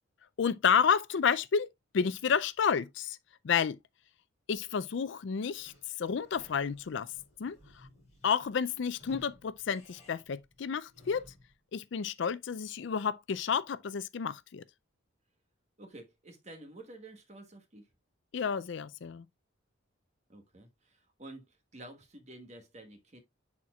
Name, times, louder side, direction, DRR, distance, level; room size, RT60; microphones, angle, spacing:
voice 1, 0.4-3.2 3.4-3.8 4.5-5.7 6.0-7.1 7.4-7.9 8.2-11.2 11.7-14.6 18.3-19.3, left 6 dB, 60° left, 0.4 m, -30 dB
Sliding door / Squeak, 5.5-11.6, left 1 dB, 35° left, 5.3 m, -57 dB
voice 2, 15.8-17.9 20.3-23.2, right 2 dB, 35° right, 1.3 m, -50 dB
10.5 x 4.3 x 2.3 m
head